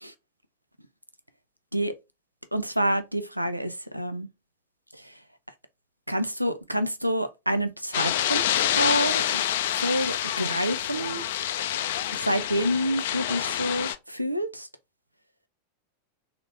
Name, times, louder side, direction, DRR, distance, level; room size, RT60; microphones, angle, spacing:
voice 1, 2.5-4.3 5.0-5.1 6.1-9.4 9.8-11.3 12.1-14.7, equal, 90° right, 0.5 m, -28 dB
sound 1, 7.9-14.0, left 11 dB, 55° left, 0.4 m, -27 dB
3.8 x 2.9 x 3.2 m
figure-of-eight pair, 90°, 0 cm